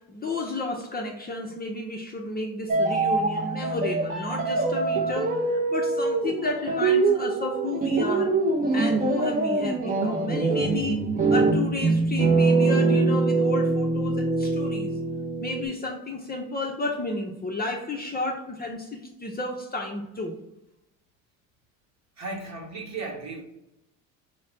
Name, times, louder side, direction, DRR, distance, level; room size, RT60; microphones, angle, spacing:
voice 1, 0.0-8.3 8.7-11.0 11.3-15.0 15.4-20.3, left 2 dB, 25° left, 1 dB, 0.6 m, -32 dB
sound 1, 2.7-15.7, right 3 dB, 20° right, 0.6 m, -24 dB
voice 2, 22.2-23.4, right 3 dB, 40° right, 0 dB, 1.1 m, -35 dB
4.1 x 2.1 x 3.8 m, 0.89 s
supercardioid pair, 75°, 41 cm